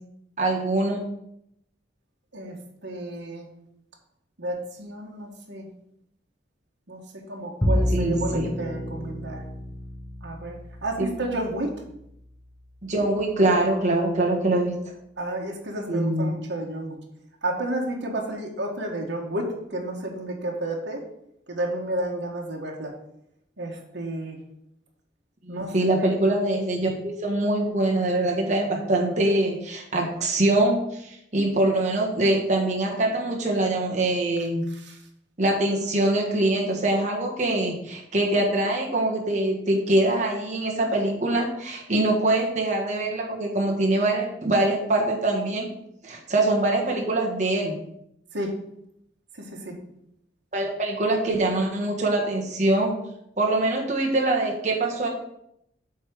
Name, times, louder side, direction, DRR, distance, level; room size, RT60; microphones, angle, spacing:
voice 1, 0.4-1.0 7.9-8.5 11.0-11.1 12.8-14.8 15.9-16.3 25.4-34.7 35.4-45.7 46.0-47.8 50.5-52.9 53.4-55.1, right 2 dB, 40° right, -1 dB, 1.6 m, -23 dB
voice 2, 2.3-3.5 4.4-5.7 6.9-9.5 10.2-11.7 15.2-17.0 17.4-21.0 21.5-22.9 23.6-24.4 25.5-25.7 34.7-35.0 48.3-48.5 49.4-49.7, right 1 dB, 75° right, 0 dB, 1.5 m, -31 dB
Bowed string instrument, 7.6-14.0, equal, 15° left, 0.9 m, -31 dB
8.3 x 3.6 x 6.4 m, 0.77 s
head